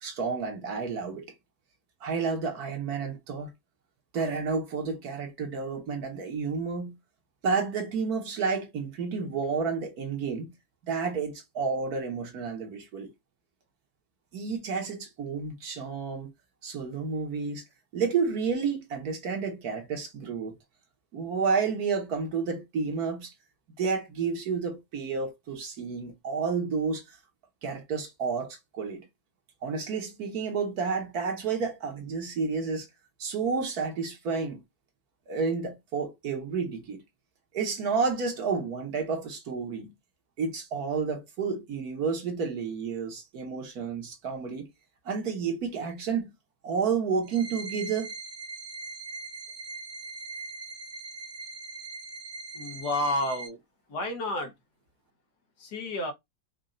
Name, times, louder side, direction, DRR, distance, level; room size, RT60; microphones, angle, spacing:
voice 1, 0.0-1.3 2.0-3.5 4.1-7.0 7.4-10.5 10.8-13.1 14.3-16.3 16.6-17.6 17.9-20.6 21.1-23.3 23.8-27.0 27.6-29.1 29.6-32.9 33.2-34.6 35.3-37.0 37.5-39.9 40.4-44.7 45.0-46.3 46.6-48.1, right 5 dB, 65° right, 1.7 m, -30 dB
sound 1, 47.2-53.5, right 3 dB, 45° right, 1.1 m, -41 dB
voice 2, 52.5-53.6 53.9-54.5 55.6-56.1, left 1 dB, 75° left, 1.7 m, -30 dB
5.4 x 2.5 x 3.8 m
omnidirectional pair, 1.7 m